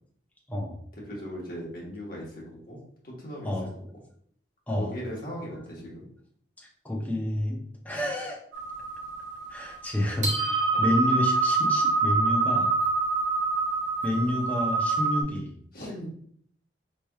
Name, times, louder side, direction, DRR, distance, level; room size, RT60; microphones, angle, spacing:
voice 1, 1.1-2.8 3.0-3.5 4.8-6.1 10.7-10.8 15.7-16.1, equal, 50° left, -3 dB, 1.3 m, -38 dB
voice 2, 6.6-7.6 7.8-8.4 9.5-12.7 14.0-15.5, left 1 dB, 10° left, -1 dB, 0.7 m, -29 dB
sound 1, 8.5-15.2, right 4 dB, 75° right, 0.8 m, -26 dB
4.2 x 3.2 x 2.3 m, 0.62 s
head